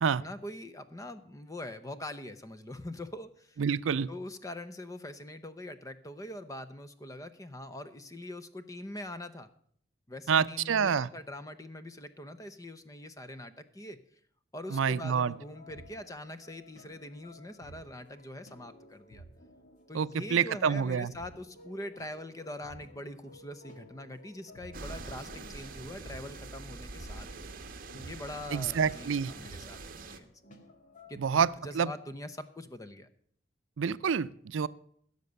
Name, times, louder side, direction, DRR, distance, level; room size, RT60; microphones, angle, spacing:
voice 1, 0.0-3.6 4.1-9.5 10.1-14.0 14.5-19.2 19.9-27.3 27.9-29.8 30.1-30.3 31.1-33.1, left 1 dB, 20° left, 11 dB, 0.8 m, -43 dB
voice 2, 3.6-4.1 10.3-11.1 14.7-15.3 19.9-21.1 28.5-29.3 31.2-31.5 31.8-31.9 33.8-34.7, right 6 dB, 85° right, 16 dB, 0.4 m, -27 dB
sound 1, 14.7-31.5, equal, 40° left, 1.8 m, -54 dB
sound 2, 24.7-30.2, right 3 dB, 45° right, 1.1 m, -44 dB
16.0 x 6.7 x 6.8 m, 0.63 s
head